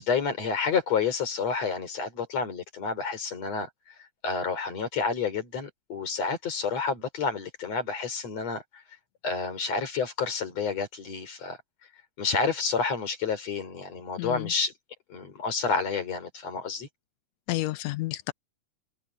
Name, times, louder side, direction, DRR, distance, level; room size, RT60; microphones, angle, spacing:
voice 1, 0.0-8.8 9.2-11.6 12.2-14.7 15.1-16.9, left 5 dB, 60° left, 5.1 m, -29 dB
voice 2, 14.2-14.5 17.5-18.3, left 18 dB, 80° left, 1.7 m, -30 dB
omnidirectional pair, 3.3 m